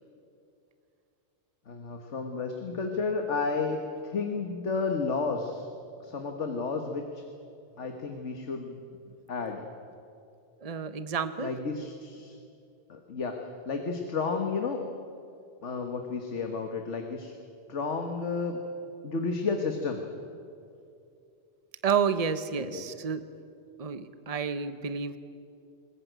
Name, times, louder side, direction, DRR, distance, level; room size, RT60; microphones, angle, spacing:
voice 1, 1.7-5.7 6.0-7.2 7.8-8.8 9.3-9.6 11.4-12.4 12.9-14.8 15.6-17.3 17.7-18.6 19.0-20.0 22.6-22.8, left 4 dB, 80° left, 4 dB, 1.7 m, -32 dB
voice 2, 10.6-11.5 21.8-23.2 23.8-25.2, right 6 dB, 35° right, 11 dB, 1.0 m, -30 dB
21.0 x 21.0 x 9.2 m, 2.6 s
omnidirectional pair, 1.2 m